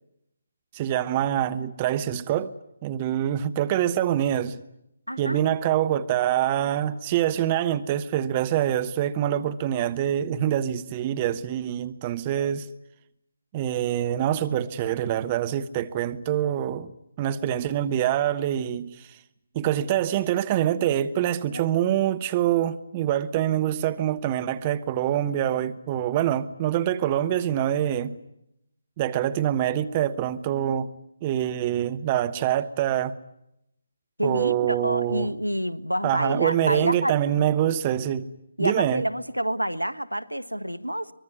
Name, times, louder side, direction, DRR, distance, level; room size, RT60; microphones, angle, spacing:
voice 1, 0.7-2.5 2.8-4.6 5.2-12.7 13.5-16.9 17.2-19.1 19.5-28.1 29.0-30.9 31.2-33.1 34.2-35.3 36.0-38.3 38.6-39.0, right 11 dB, 25° right, 1.1 m, -25 dB
voice 2, 5.1-5.4 21.5-21.7 34.2-37.1 38.6-41.1, equal, 90° right, 1.3 m, -28 dB
24.5 x 22.0 x 9.6 m
figure-of-eight pair, 145°, 0 cm